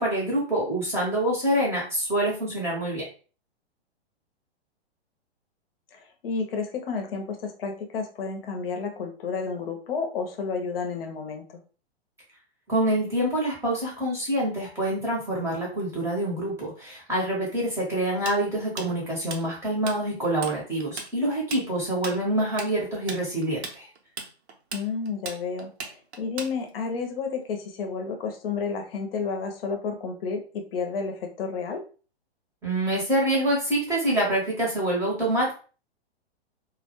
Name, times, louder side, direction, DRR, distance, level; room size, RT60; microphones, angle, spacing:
voice 1, 0.0-3.0 12.7-23.9 32.6-35.5, right 1 dB, 10° right, -4 dB, 0.7 m, -26 dB
voice 2, 5.9-11.6 24.7-31.8, left 5 dB, 60° left, 4 dB, 0.7 m, -31 dB
Tools, 18.3-20.0 20.2-20.6 20.8-26.9, right 4 dB, 80° right, 0.7 m, -36 dB
2.1 x 2.1 x 2.9 m, 0.37 s
hypercardioid pair, 140°, 32 cm